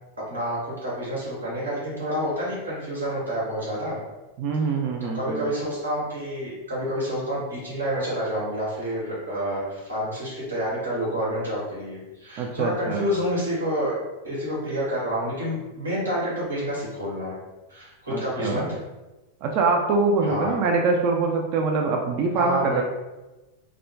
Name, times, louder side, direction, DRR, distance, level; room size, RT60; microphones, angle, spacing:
voice 1, 0.2-4.0 4.6-4.7 5.0-14.0 14.2-17.3 17.7-18.8 20.2-20.6 22.3-22.8, equal, 75° right, -7 dB, 1.1 m, -28 dB
voice 2, 4.4-5.5 12.4-13.1 18.1-18.8 19.4-22.8, right 4 dB, 40° right, 2 dB, 0.3 m, -24 dB
2.4 x 2.1 x 3.3 m, 1.1 s
figure-of-eight pair, 90°, 0 cm